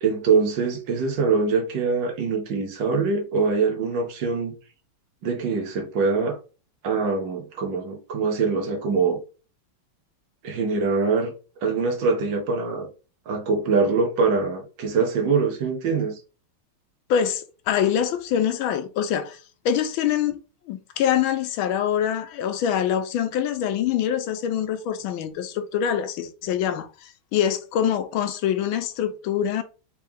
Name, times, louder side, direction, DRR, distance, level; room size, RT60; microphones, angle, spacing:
voice 1, 0.0-4.5 5.2-6.4 6.8-9.2 10.4-11.3 11.6-12.9 13.3-16.1, right 4 dB, 65° right, 1.5 m, -23 dB
voice 2, 17.1-19.4 19.6-20.4 20.7-29.6, left 9 dB, 85° left, 1.4 m, -24 dB
4.6 x 3.3 x 3.5 m
omnidirectional pair, 2.2 m